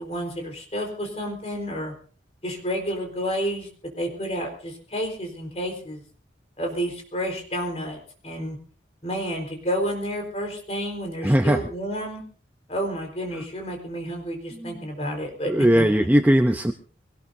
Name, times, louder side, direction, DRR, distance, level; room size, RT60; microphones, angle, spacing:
voice 1, 0.0-1.9 2.4-3.7 4.0-6.0 6.6-8.6 9.0-12.2 12.7-15.9, equal, 35° left, 2 dB, 4.2 m, -30 dB
voice 2, 11.2-11.6 14.5-14.8 15.4-16.7, equal, 10° right, 6 dB, 0.6 m, -19 dB
24.0 x 18.5 x 2.7 m, 0.41 s
head